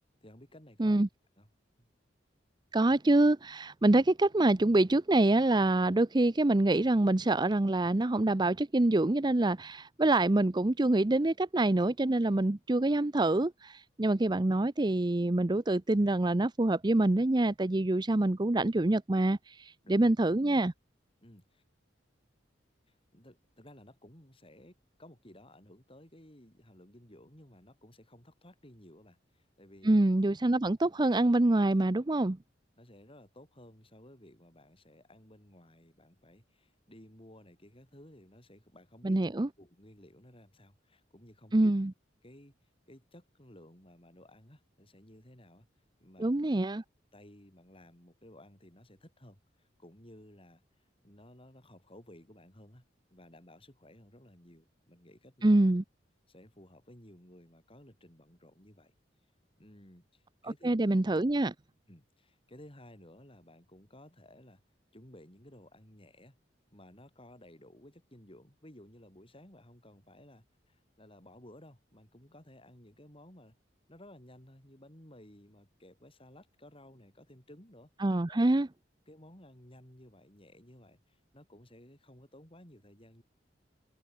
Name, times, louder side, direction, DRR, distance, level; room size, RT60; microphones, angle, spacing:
voice 1, 0.2-1.0 1.4-1.5 1.8-1.9 19.8-20.1 21.2-21.6 22.9-30.0 32.8-39.2 39.6-41.7 42.2-42.6 42.9-45.7 46.0-46.4 47.1-52.9 53.1-55.6 56.3-59.0 59.6-60.8 61.9-64.6 64.9-66.4 66.7-73.6 73.9-77.9 78.3-78.4 79.1-83.2, left 1 dB, 30° left, 8.0 m, -56 dB
voice 2, 2.7-20.7 29.8-32.4 39.0-39.5 41.5-41.9 46.2-46.8 55.4-55.8 60.6-61.5 78.0-78.7, right 2 dB, 25° right, 0.6 m, -26 dB
head